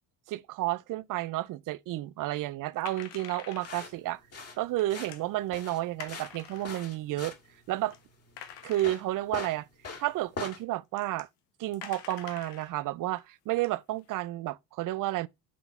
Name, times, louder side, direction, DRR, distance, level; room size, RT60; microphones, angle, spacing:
voice 1, 0.3-4.2 4.6-7.3 7.7-8.0 8.6-9.7 10.0-11.3 11.6-15.3, right 16 dB, 45° right, 0.5 m, -31 dB
sound 1, 2.8-3.9 4.8-5.3 6.0-6.8 7.5-7.6 7.9-8.0 8.4-9.3 10.1-10.2 10.4-10.6 11.0-11.3 11.7-12.7 13.2-13.3 13.6-14.2, left 10 dB, 90° left, 0.9 m, -46 dB
sound 2, 3.6-10.6, left 4 dB, 30° left, 2.2 m, -42 dB
8.2 x 3.9 x 4.2 m
hypercardioid pair, 70°, 48 cm